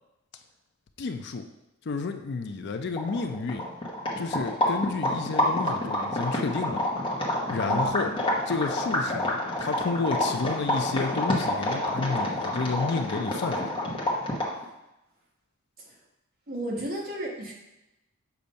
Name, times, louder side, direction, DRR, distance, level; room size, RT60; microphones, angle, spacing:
voice 1, 1.0-1.4 1.9-3.7 4.2-6.8 7.5-8.1 8.5-13.7, left 4 dB, 55° left, 6 dB, 0.4 m, -31 dB
sound 1, 2.6-2.7 2.9-14.6, left 1 dB, 25° left, 1.0 m, -28 dB
voice 2, 7.6-8.1 15.8-16.0 16.5-17.5, right 1 dB, 45° right, -3 dB, 1.4 m, -33 dB
6.9 x 2.6 x 5.2 m, 0.92 s
head